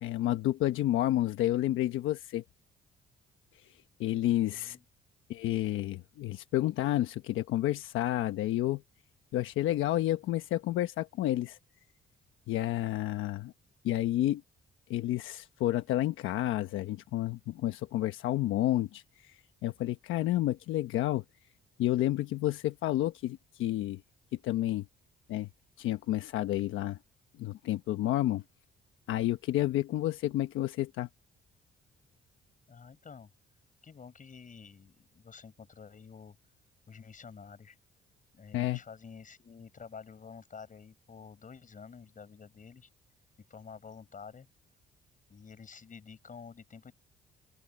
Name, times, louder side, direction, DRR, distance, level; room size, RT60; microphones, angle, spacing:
voice 1, 0.0-2.4 4.0-4.8 5.3-8.8 9.3-11.6 12.5-13.5 13.8-14.4 14.9-19.0 19.6-21.2 21.8-24.0 24.4-24.8 25.3-25.5 25.8-27.0 27.4-28.4 29.1-31.1 38.5-38.8, left 14 dB, 85° left, 1.1 m, -30 dB
voice 2, 4.4-4.8 32.7-33.3 33.8-36.4 36.9-37.8 38.3-42.9 43.5-44.5 45.3-46.9, left 6 dB, 40° left, 7.1 m, -49 dB
open air
cardioid pair, 90°, 20 cm